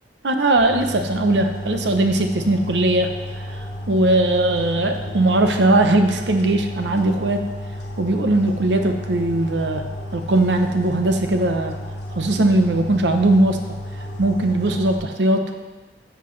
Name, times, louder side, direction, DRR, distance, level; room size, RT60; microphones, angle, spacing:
voice 1, 0.2-3.1 3.9-7.4 8.0-9.8 10.1-11.8 12.1-13.6 14.2-15.5, right 2 dB, 70° right, 5 dB, 0.8 m, -19 dB
sound 1, 0.6-15.0, equal, 70° left, 1.5 m, -33 dB
11.5 x 6.0 x 3.2 m, 1.3 s
head